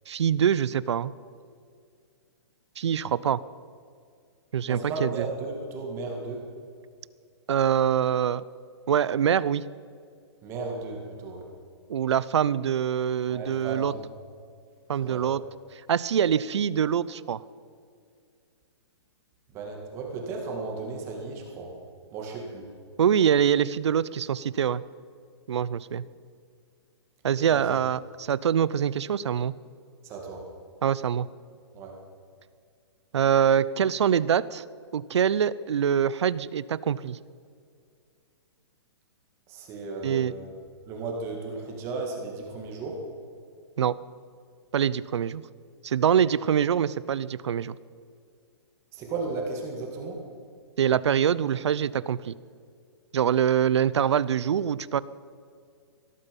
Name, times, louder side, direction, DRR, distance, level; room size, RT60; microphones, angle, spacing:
voice 1, 0.1-1.1 2.8-3.4 4.5-5.1 7.5-8.4 8.9-9.6 11.9-13.9 14.9-15.4 15.7-17.4 23.0-24.8 25.5-26.0 27.2-29.5 30.8-31.3 33.1-34.6 34.9-37.2 40.0-40.3 43.8-43.9 44.7-45.4 45.8-47.7 50.8-52.3 53.1-55.0, right 8 dB, 80° right, 19 dB, 0.6 m, -24 dB
voice 2, 4.7-6.5 10.4-11.5 13.3-14.1 15.0-15.3 19.5-21.8 22.1-22.7 27.5-27.7 30.0-30.4 31.7-32.0 39.5-40.5 40.9-43.0 48.9-50.2, right 3 dB, 20° right, 1 dB, 2.1 m, -35 dB
18.0 x 12.5 x 5.4 m, 2.2 s
hypercardioid pair, 170°, 15 cm